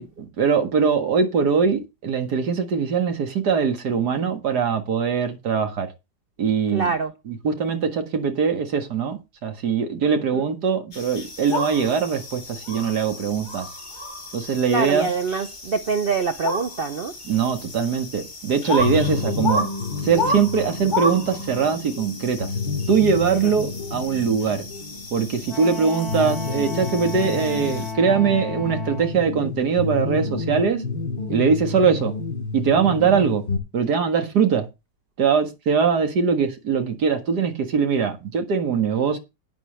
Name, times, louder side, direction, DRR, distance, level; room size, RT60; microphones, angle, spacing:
voice 1, 0.0-5.9 6.4-6.9 7.3-13.7 14.3-15.1 17.3-19.7 20.0-22.5 22.9-24.7 25.1-30.8 31.3-32.2 32.5-33.5 33.7-34.7 35.2-39.2, right 6 dB, 60° right, 2.1 m, -22 dB
voice 2, 6.7-7.1 10.3-10.4 14.7-17.1 23.4-23.5, right 5 dB, 85° right, 0.5 m, -25 dB
sound 1, 10.9-27.9, left 2 dB, 25° left, 2.5 m, -32 dB
sound 2, 18.8-33.6, left 4 dB, 75° left, 2.7 m, -30 dB
Wind instrument woodwind instrument, 25.5-29.2, left 2 dB, ahead, 5.5 m, -35 dB
12.5 x 9.1 x 3.2 m
omnidirectional pair, 2.0 m